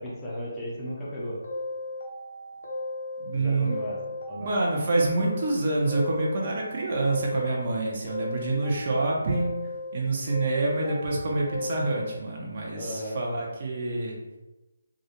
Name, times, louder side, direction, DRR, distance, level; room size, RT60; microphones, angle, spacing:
voice 1, 0.0-1.4 3.3-4.0 4.3-4.5 12.7-13.2, equal, 10° left, -7 dB, 0.4 m, -35 dB
sound 1, 1.4-3.3 3.6-5.5 5.9-7.7 8.1-9.9 10.3-12.2, left 2 dB, 65° left, 0.5 m, -36 dB
voice 2, 3.2-3.7 4.4-9.5 9.9-14.2, right 2 dB, 40° right, -2 dB, 0.5 m, -27 dB
2.4 x 2.0 x 2.8 m, 1.1 s
hypercardioid pair, 170°, 0 cm